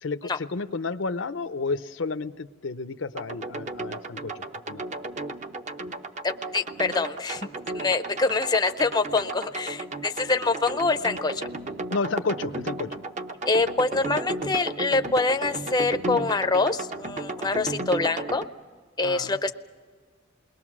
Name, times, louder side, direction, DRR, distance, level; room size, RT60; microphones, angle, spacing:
voice 1, 0.0-4.8 11.9-13.0 19.0-19.5, left 4 dB, 70° left, 13 dB, 0.6 m, -31 dB
sound 1, 3.1-18.4, right 2 dB, 35° right, 0.8 m, -34 dB
voice 2, 6.2-7.5 7.7-11.5 13.5-18.4 19.0-19.5, left 3 dB, 20° left, 8 dB, 0.6 m, -25 dB
29.0 x 21.0 x 6.1 m, 1.5 s
head